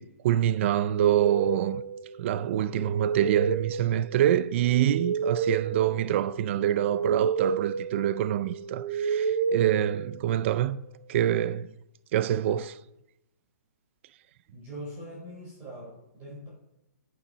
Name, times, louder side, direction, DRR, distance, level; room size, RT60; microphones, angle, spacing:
voice 1, 0.0-1.8 2.2-10.8 11.1-11.7 12.1-12.8, right 11 dB, 45° right, 0.4 m, -26 dB
sound 1, 0.9-10.6, right 6 dB, 75° right, 1.1 m, -31 dB
voice 2, 14.5-16.5, equal, 25° right, 4.0 m, -42 dB
11.0 x 8.6 x 4.1 m
hypercardioid pair, 145°, 9 cm